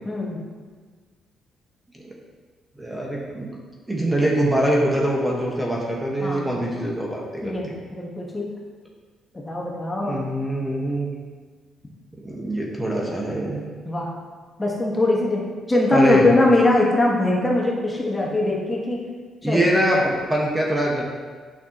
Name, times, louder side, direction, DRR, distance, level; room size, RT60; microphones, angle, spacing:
voice 1, 0.0-0.4 6.2-6.5 7.4-8.5 9.3-10.2 13.8-14.1 14.6-19.0 19.4-19.6, left 2 dB, 20° left, -3 dB, 1.4 m, -21 dB
voice 2, 2.8-3.5 3.9-7.7 10.0-11.1 12.2-13.7 15.9-16.3 19.4-21.0, right 1 dB, 10° right, -3 dB, 1.4 m, -23 dB
9.3 x 5.9 x 3.0 m, 1.5 s
cardioid pair, 90°, 0 cm